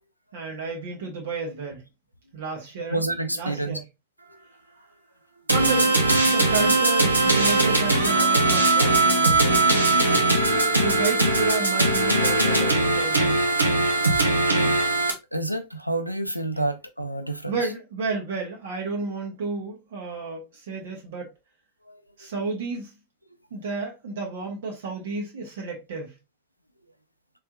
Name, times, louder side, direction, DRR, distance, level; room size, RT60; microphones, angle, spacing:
voice 1, 0.3-1.8 2.3-3.0 3.3-3.8 5.5-5.9 6.2-9.6 10.7-13.6 16.5-16.7 17.5-21.3 22.2-22.9 23.5-26.1, right 4 dB, 60° right, 1.1 m, -31 dB
voice 2, 2.9-3.8 15.3-17.5 21.9-22.0, right 2 dB, 90° left, 0.5 m, -28 dB
sound 1, 5.5-15.1, right 2 dB, 80° right, 0.7 m, -20 dB
3.3 x 3.3 x 2.4 m
figure-of-eight pair, 90°, 0 cm